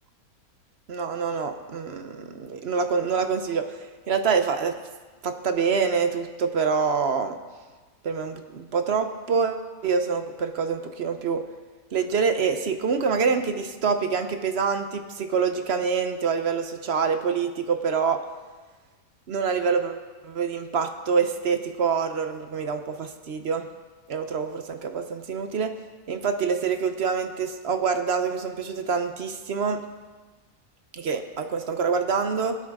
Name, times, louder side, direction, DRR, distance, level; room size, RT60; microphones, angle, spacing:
voice 1, 0.9-4.8 5.2-7.4 8.0-11.4 11.9-18.2 19.3-23.7 24.1-25.7 26.1-29.8 30.9-32.6, right 5 dB, 50° right, 8 dB, 0.9 m, -26 dB
21.5 x 8.7 x 3.6 m, 1.4 s
omnidirectional pair, 1.6 m